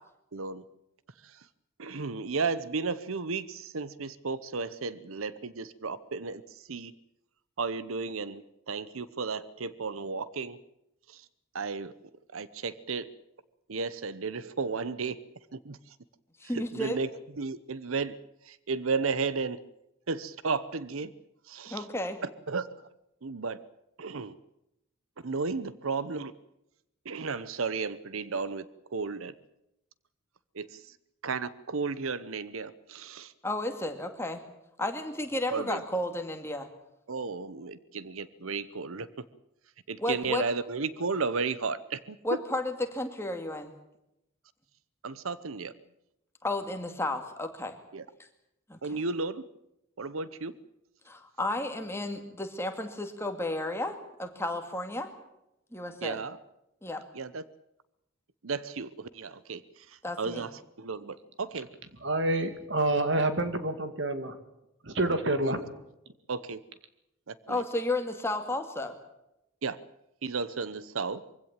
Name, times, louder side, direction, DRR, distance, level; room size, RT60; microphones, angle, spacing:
voice 1, 0.3-0.6 1.2-1.4 1.8-6.4 6.7-6.9 7.6-10.6 11.1-11.2 11.5-11.9 12.3-13.1 13.7-15.2 15.5-15.8 16.5-17.1 17.4-18.1 18.5-19.6 20.1-21.1 21.5-21.9 22.5-22.7 23.2-23.6 24.0-24.3 25.2-26.3 27.0-28.7 28.9-29.3 30.5-30.8 31.2-33.3 35.5-35.8 37.1-39.1 39.9-42.2 45.0-45.7 47.9-48.0 48.8-49.4 50.0-50.5 56.0-56.4 57.1-57.4 58.4-59.6 59.9-60.5 60.8-61.7 66.3-66.6 67.3-67.6 69.6-69.8 70.2-71.2, right 4 dB, 85° right, 17 dB, 0.9 m, -33 dB
voice 2, 16.4-17.0 21.7-22.2 33.4-34.4 34.8-36.7 40.0-40.5 42.2-43.7 46.4-47.7 48.7-49.0 51.1-55.1 55.7-56.2 56.8-57.0 60.0-60.5 67.5-69.0, left 1 dB, 10° left, 5 dB, 2.2 m, -33 dB
voice 3, 62.0-64.4 64.8-65.6, right 2 dB, 60° right, 10 dB, 2.2 m, -28 dB
23.5 x 16.5 x 8.9 m, 0.86 s
head